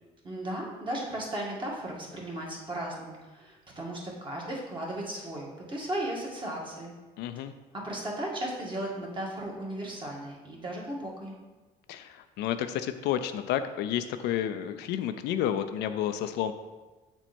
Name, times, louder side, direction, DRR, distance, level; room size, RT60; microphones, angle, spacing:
voice 1, 0.2-6.9 7.7-11.3, right 1 dB, 30° right, -2 dB, 1.9 m, -36 dB
voice 2, 7.2-7.5 11.9-16.5, left 10 dB, 85° left, 9 dB, 0.5 m, -30 dB
7.9 x 4.5 x 4.3 m, 1.2 s
cardioid pair, 110°, 17 cm